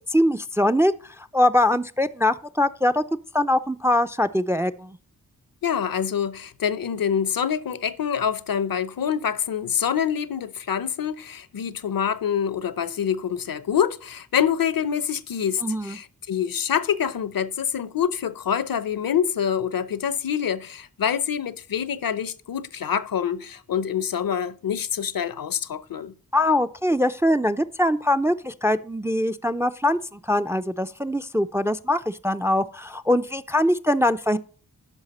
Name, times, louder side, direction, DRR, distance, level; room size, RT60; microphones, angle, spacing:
voice 1, 0.1-3.0 3.3-5.0 15.6-16.0 26.3-34.4, left 1 dB, 10° right, 0.4 m, -22 dB
voice 2, 5.6-26.1, left 8 dB, 70° left, 0.7 m, -26 dB
9.8 x 5.9 x 4.1 m
wide cardioid pair, 75°, 36 cm